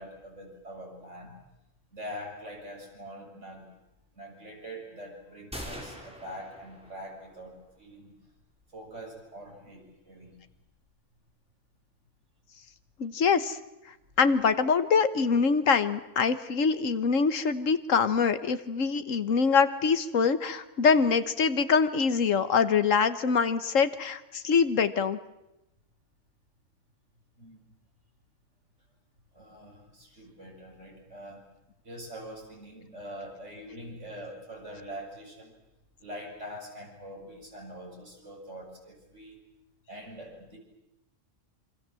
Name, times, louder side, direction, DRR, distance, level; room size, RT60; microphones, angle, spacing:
voice 1, 0.0-1.4 1.9-3.7 4.1-8.2 8.7-10.4 27.4-27.6 29.3-31.5 31.8-35.5 36.0-39.4 39.9-40.6, equal, 70° right, 0 dB, 7.5 m, -44 dB
sound 1, 5.5-7.4, equal, 5° right, 5.1 m, -43 dB
voice 2, 13.0-13.6 14.2-25.2, left 5 dB, 80° left, 12 dB, 1.6 m, -24 dB
27.5 x 24.5 x 7.7 m, 0.91 s
omnidirectional pair, 1.3 m